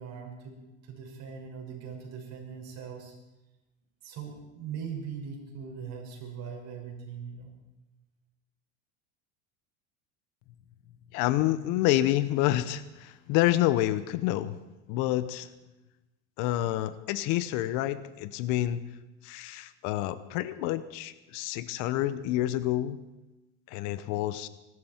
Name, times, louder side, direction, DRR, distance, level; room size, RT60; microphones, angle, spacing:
voice 1, 0.0-3.1 4.0-7.5, right 6 dB, 50° right, 1 dB, 5.6 m, -40 dB
voice 2, 11.1-14.5 14.9-15.5 16.4-18.8 19.2-23.0 23.7-24.5, left 14 dB, 65° left, 15 dB, 1.0 m, -28 dB
23.5 x 12.5 x 4.5 m, 1.0 s
supercardioid pair, 100°, 34 cm